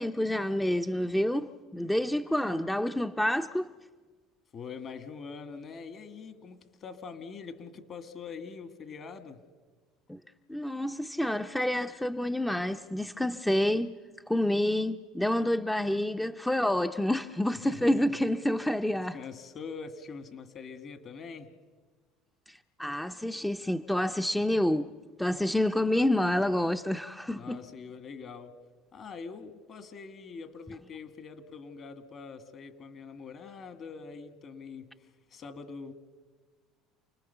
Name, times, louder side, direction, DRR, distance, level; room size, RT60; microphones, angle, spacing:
voice 1, 0.0-3.7 10.1-10.2 10.5-14.0 14.3-19.2 22.5-24.9 25.2-27.6, left 1 dB, 5° left, 0.6 m, -28 dB
voice 2, 4.5-9.4 17.6-18.1 19.1-21.5 27.3-28.5 28.9-34.9 35.3-35.9, left 5 dB, 45° left, 1.9 m, -43 dB
29.0 x 20.0 x 6.9 m
hypercardioid pair, 80°, 0 cm